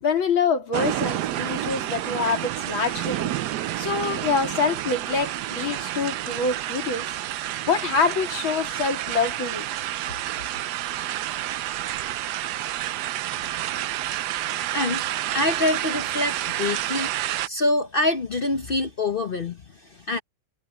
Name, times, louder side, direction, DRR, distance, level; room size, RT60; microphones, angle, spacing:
voice 1, 0.0-3.3 3.8-7.1 7.7-9.7, left 5 dB, 80° left, 3.7 m, -25 dB
sound 1, 0.7-17.5, right 13 dB, 70° right, 1.0 m, -29 dB
voice 2, 14.5-15.0 15.3-17.1 17.5-20.2, left 2 dB, 50° left, 0.6 m, -26 dB
omnidirectional pair, 2.2 m